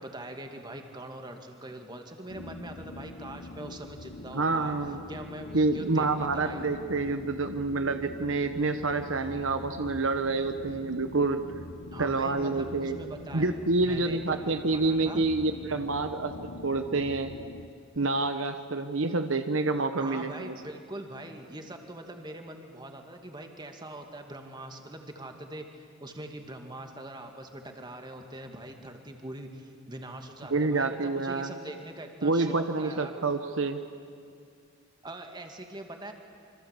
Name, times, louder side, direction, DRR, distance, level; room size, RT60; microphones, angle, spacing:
voice 1, 0.0-4.7 5.1-6.6 11.9-13.5 13.8-15.3 20.0-33.2 35.0-36.1, right 1 dB, 20° right, 4 dB, 2.3 m, -43 dB
sound 1, 2.3-17.7, left 2 dB, 85° left, 1.2 m, -44 dB
voice 2, 4.3-5.0 5.5-11.4 12.0-13.0 13.3-16.3 16.6-17.3 18.0-20.5 30.5-31.5 32.2-33.8, right 3 dB, 70° right, 8 dB, 1.1 m, -28 dB
27.5 x 25.0 x 8.5 m, 2.3 s
head